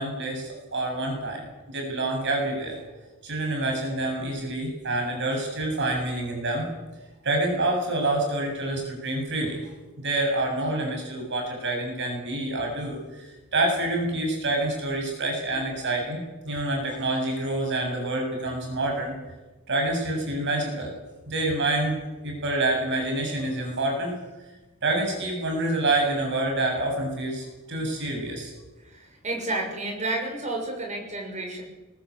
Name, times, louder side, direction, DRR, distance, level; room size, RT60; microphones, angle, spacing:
voice 1, 0.0-2.8 3.2-6.7 7.2-9.6 10.0-19.1 19.7-20.9 21.3-22.0 22.2-24.1 24.8-28.5, right 2 dB, 55° right, 1 dB, 7.4 m, -27 dB
voice 2, 28.8-31.6, right 2 dB, 35° right, 2 dB, 6.4 m, -31 dB
21.5 x 20.5 x 8.6 m, 1.1 s
head